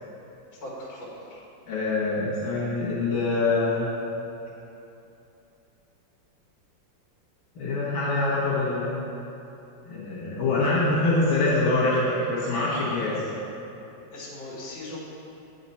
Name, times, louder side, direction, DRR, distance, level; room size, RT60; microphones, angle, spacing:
voice 1, 0.5-1.4 14.1-15.0, left 1 dB, 60° left, -7 dB, 2.2 m, -39 dB
voice 2, 1.7-3.9 7.6-9.0 9.9-13.1, left 2 dB, 80° left, -8 dB, 2.3 m, -24 dB
8.9 x 5.0 x 4.3 m, 2.9 s
omnidirectional pair, 2.1 m